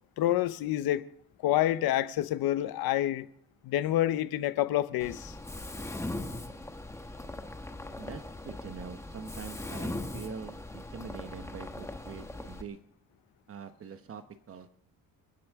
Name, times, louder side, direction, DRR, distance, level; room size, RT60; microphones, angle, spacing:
voice 1, 0.2-1.0 1.4-3.3 3.6-5.3, left 13 dB, 75° left, 0.9 m, -28 dB
Mechanisms, 5.0-12.6, left 2 dB, 10° left, 1.0 m, -40 dB
voice 2, 8.0-12.8 13.5-14.7, right 6 dB, 35° right, 1.1 m, -44 dB
29.5 x 10.0 x 3.6 m
cardioid pair, 150°, 37 cm